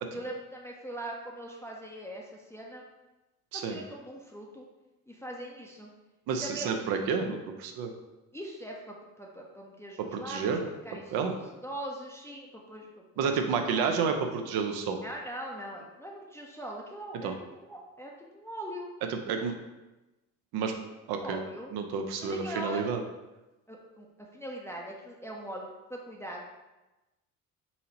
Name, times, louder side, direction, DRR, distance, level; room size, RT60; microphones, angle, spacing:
voice 1, 0.1-2.8 3.5-4.6 5.1-5.9 6.4-6.8 8.3-10.6 10.8-11.1 11.6-13.0 13.4-14.0 15.0-18.9 21.1-21.7 22.2-22.8 23.7-26.5, right 1 dB, 5° left, -2 dB, 0.5 m, -41 dB
voice 2, 6.3-7.9 10.1-10.6 11.1-11.3 13.2-15.0 17.2-17.3 19.1-19.5 20.5-20.7 21.1-21.4 21.7-23.0, right 5 dB, 65° right, 5 dB, 0.6 m, -30 dB
4.1 x 2.8 x 2.8 m, 1.0 s
hypercardioid pair, 55°, 41 cm